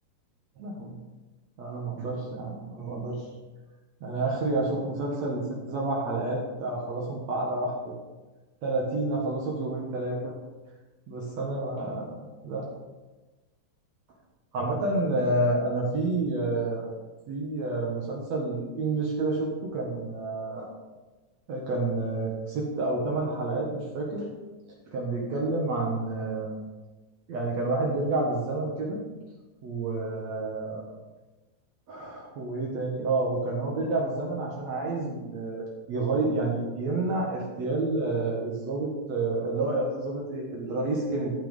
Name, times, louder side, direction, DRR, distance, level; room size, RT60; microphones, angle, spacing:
voice 1, 0.6-1.0 1.6-3.3 4.0-7.9 8.6-10.3 11.1-12.1 12.4-12.7 14.5-16.9 17.3-20.7 21.5-24.3 24.9-26.6 27.3-29.0 29.6-30.8 31.9-35.6 35.9-41.3, right 2 dB, 60° right, -3 dB, 2.5 m, -29 dB
12.5 x 5.8 x 5.4 m, 1.2 s
omnidirectional pair, 3.8 m